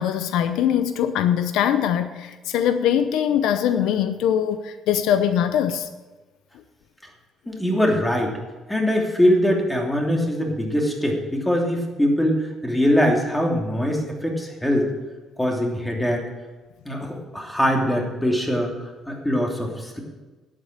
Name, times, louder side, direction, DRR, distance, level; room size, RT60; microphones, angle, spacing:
voice 1, 0.0-5.9, left 9 dB, 80° left, 10 dB, 0.8 m, -22 dB
voice 2, 7.5-8.3 8.7-14.9 15.4-16.2 16.8-20.0, equal, 5° left, 0 dB, 2.9 m, -22 dB
11.0 x 8.9 x 6.7 m, 1.3 s
cardioid pair, 105°, 0 cm